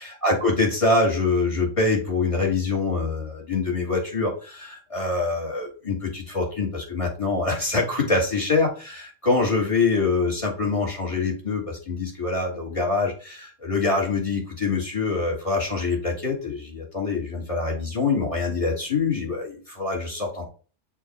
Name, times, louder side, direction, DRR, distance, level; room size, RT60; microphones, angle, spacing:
voice 1, 0.0-20.5, left 3 dB, 25° left, -1 dB, 2.7 m, -25 dB
6.7 x 3.0 x 5.2 m, 0.36 s
omnidirectional pair, 1.2 m